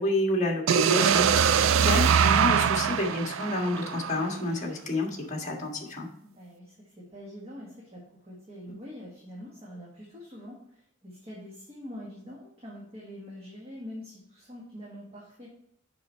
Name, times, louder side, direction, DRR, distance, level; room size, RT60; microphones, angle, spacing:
voice 1, 0.0-6.1, left 2 dB, 35° left, 0 dB, 1.7 m, -29 dB
sound 1, 0.7-4.6, right 7 dB, 75° right, 0.3 m, -23 dB
voice 2, 1.6-1.9 6.2-15.5, left 1 dB, 30° right, -4 dB, 1.6 m, -44 dB
7.0 x 5.4 x 4.4 m, 0.75 s
head